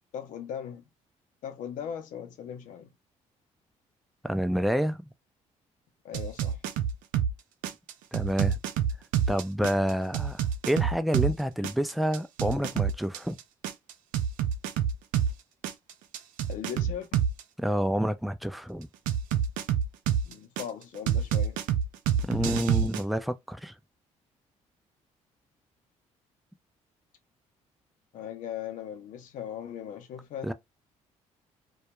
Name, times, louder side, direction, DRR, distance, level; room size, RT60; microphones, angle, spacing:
voice 1, 0.1-0.8 1.4-2.9 6.0-6.6 16.5-17.2 20.2-21.6 28.1-30.5, left 9 dB, 75° left, 0.6 m, -39 dB
voice 2, 4.2-5.1 8.1-8.6 9.3-13.4 17.6-18.9 22.3-23.7 30.4-30.5, equal, ahead, 0.4 m, -28 dB
sound 1, 6.1-7.3 7.6-11.3 11.6-15.3 15.6-17.4 19.1-20.6 21.1-23.0, right 8 dB, 85° right, 0.4 m, -27 dB
2.3 x 2.1 x 2.9 m
cardioid pair, 80°, 14 cm